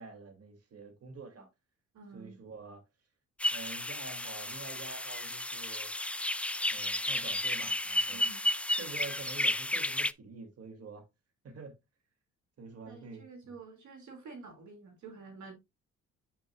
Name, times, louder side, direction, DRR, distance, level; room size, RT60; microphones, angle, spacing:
voice 1, 0.0-1.5 2.1-2.8 3.5-5.9 6.7-8.2 8.8-11.0 11.4-11.7 12.6-13.5, right 4 dB, 55° right, 2.6 m, -47 dB
voice 2, 1.9-2.4 8.1-8.5 12.9-15.5, right 4 dB, 70° right, 2.4 m, -49 dB
sound 1, 3.4-10.1, left 1 dB, 5° left, 0.3 m, -32 dB
8.4 x 6.6 x 2.4 m
cardioid pair, 90°, 30 cm